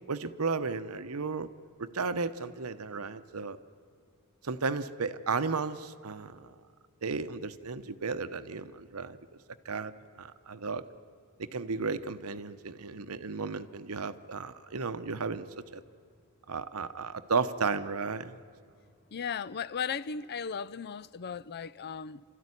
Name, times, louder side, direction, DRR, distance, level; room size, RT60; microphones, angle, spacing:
voice 1, 0.1-1.5 1.8-3.6 4.4-6.5 7.0-9.2 9.6-9.9 10.2-10.8 11.4-15.5 15.7-15.8 16.5-18.3, right 4 dB, 85° right, 0.9 m, -34 dB
voice 2, 19.1-22.2, left 6 dB, 50° left, 0.5 m, -36 dB
28.0 x 13.5 x 9.8 m
head